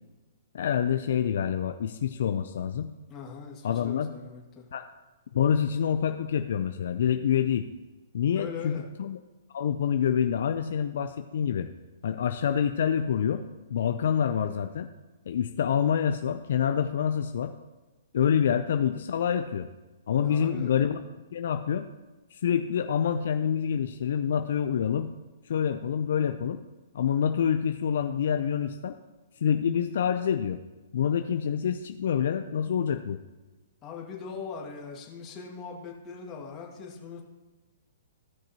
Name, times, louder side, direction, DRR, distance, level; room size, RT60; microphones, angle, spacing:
voice 1, 0.5-2.9 3.6-4.1 4.7-4.8 5.3-7.7 8.1-9.2 9.5-11.7 12.0-13.4 13.7-14.9 15.3-17.5 18.1-19.7 20.1-21.0 21.3-21.9 22.3-25.1 25.5-26.6 26.9-29.0 29.4-30.6 30.9-33.2, left 8 dB, 70° left, 8 dB, 0.5 m, -27 dB
voice 2, 3.1-4.7 8.3-8.8 20.2-20.7 33.8-37.2, left 6 dB, 25° left, -2 dB, 2.1 m, -40 dB
15.5 x 6.0 x 2.9 m, 1.2 s
hypercardioid pair, 135°, 0 cm